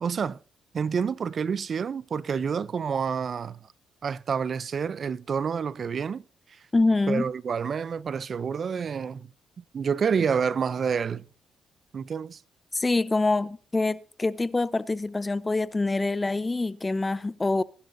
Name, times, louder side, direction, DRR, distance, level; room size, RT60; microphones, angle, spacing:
voice 1, 0.0-0.4 0.7-3.6 4.0-6.2 7.1-9.3 9.7-11.2 11.9-12.4, right 6 dB, 50° right, 0.5 m, -28 dB
voice 2, 6.7-7.3 12.7-17.6, left 3 dB, 20° left, 0.7 m, -25 dB
22.0 x 11.5 x 2.7 m
cardioid pair, 90°, 0 cm